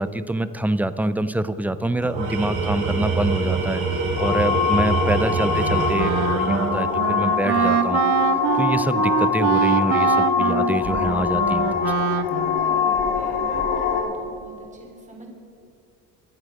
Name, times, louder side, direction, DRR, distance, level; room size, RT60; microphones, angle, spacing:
voice 1, 0.0-3.8 4.2-8.0 8.6-12.0, right 1 dB, 5° right, 13 dB, 0.5 m, -25 dB
Tools, 2.0-7.4, right 4 dB, 80° right, 4.4 m, -25 dB
sound 1, 4.1-14.0, left 7 dB, 90° left, 2.4 m, -23 dB
Wind instrument woodwind instrument, 5.5-12.8, right 12 dB, 55° right, 0.6 m, -24 dB
voice 2, 8.3-8.8 12.6-15.3, right 3 dB, 20° right, 1 dB, 3.2 m, -45 dB
22.5 x 8.0 x 5.2 m, 2.4 s
cardioid pair, 115°, 36 cm